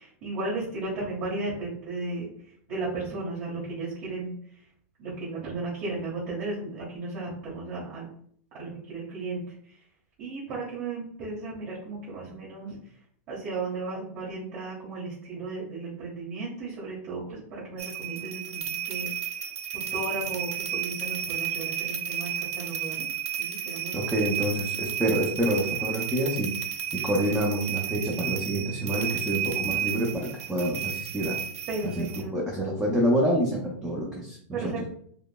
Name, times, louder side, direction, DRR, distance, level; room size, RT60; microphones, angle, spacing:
voice 1, 0.0-2.3 2.7-4.6 5.0-8.1 8.6-9.8 10.2-12.7 13.3-19.1 19.9-23.1 23.4-24.0 31.7-32.3 34.5-34.9, right 3 dB, 40° right, -7 dB, 1.3 m, -35 dB
sound 1, 17.8-32.2, right 9 dB, 70° right, 0.6 m, -32 dB
voice 2, 23.9-26.6 26.9-31.4 31.8-32.1 32.3-34.9, right 1 dB, 5° right, -3 dB, 0.5 m, -27 dB
4.9 x 2.0 x 2.2 m, 0.62 s
supercardioid pair, 145°, 8 cm